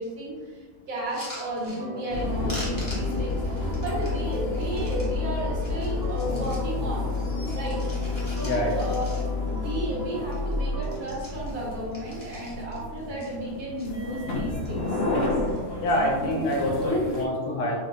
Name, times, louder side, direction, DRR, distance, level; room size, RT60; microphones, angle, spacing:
voice 1, 0.0-7.1 7.5-7.8 8.2-15.0, right 1 dB, 70° right, -5 dB, 1.7 m, -33 dB
sound 1, 1.0-2.2 2.5-5.1 5.5-6.7 7.1-9.6 9.9-10.0 10.2-10.5 10.8-12.8 13.2-13.9 14.4-14.9 15.2-15.7 16.6-16.9, equal, 15° left, 1.0 m, -44 dB
Organ, 1.7-11.0, right 1 dB, 45° right, 1.0 m, -39 dB
sound 2, 2.1-17.3, left 3 dB, 60° left, 0.7 m, -30 dB
voice 2, 8.4-8.9 15.8-17.8, equal, 85° left, -2 dB, 1.4 m, -26 dB
5.6 x 2.5 x 2.9 m, 1.5 s
omnidirectional pair, 1.7 m